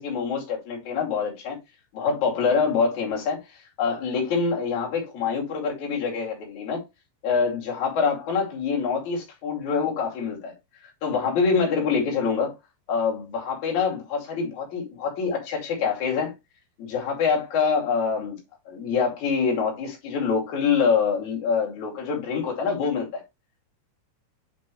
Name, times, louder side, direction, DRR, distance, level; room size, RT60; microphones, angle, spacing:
voice 1, 0.0-1.6 1.9-6.8 7.2-10.5 11.0-12.5 12.9-16.3 16.8-18.4 18.6-23.2, left 5 dB, 45° left, 3.2 m, -25 dB
7.7 x 5.4 x 3.0 m
omnidirectional pair, 5.7 m